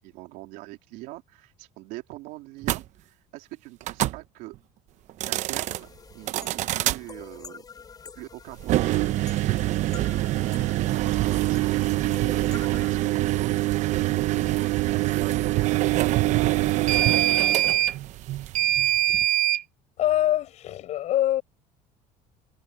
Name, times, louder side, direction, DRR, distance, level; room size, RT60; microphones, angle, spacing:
voice 1, 0.0-4.6 5.3-5.9 6.1-7.6 8.1-9.4 9.8-14.0 14.2-16.5 16.8-17.7, right 19 dB, 75° right, 3.6 m, -42 dB
sound 1, 2.6-2.8 3.8-4.2 5.1-5.8 6.3-7.0 8.6-19.6, right 15 dB, 55° right, 0.9 m, -24 dB
sound 2, 5.5-12.9, left 6 dB, 25° left, 5.7 m, -47 dB
voice 2, 20.0-21.4, left 13 dB, 55° left, 6.0 m, -24 dB
cardioid pair, 130°, 14 cm